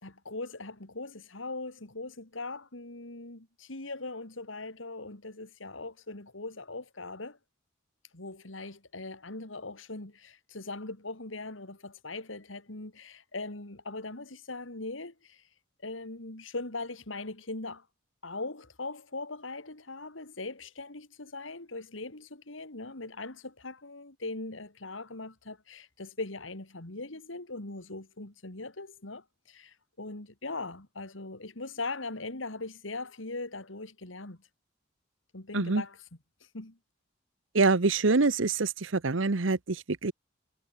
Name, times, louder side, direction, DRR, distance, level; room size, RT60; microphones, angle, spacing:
voice 1, 0.0-7.4 8.1-15.5 15.8-17.9 18.2-34.4 35.3-36.1 36.4-36.8, left 3 dB, 80° left, 2.9 m, -40 dB
voice 2, 37.5-40.1, right 3 dB, 80° right, 1.0 m, -25 dB
head